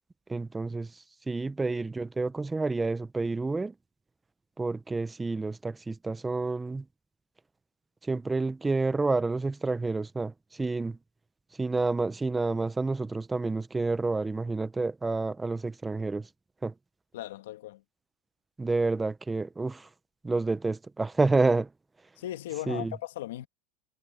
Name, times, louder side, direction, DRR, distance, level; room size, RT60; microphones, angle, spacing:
voice 1, 0.3-3.7 4.6-6.8 8.0-11.0 11.6-16.3 16.6-16.7 18.6-19.9 20.2-21.7 22.7-22.9, right 3 dB, 10° right, 0.8 m, -29 dB
voice 2, 17.1-17.8 22.2-23.5, left 14 dB, 80° left, 1.7 m, -37 dB
supercardioid pair, 125°, 0 cm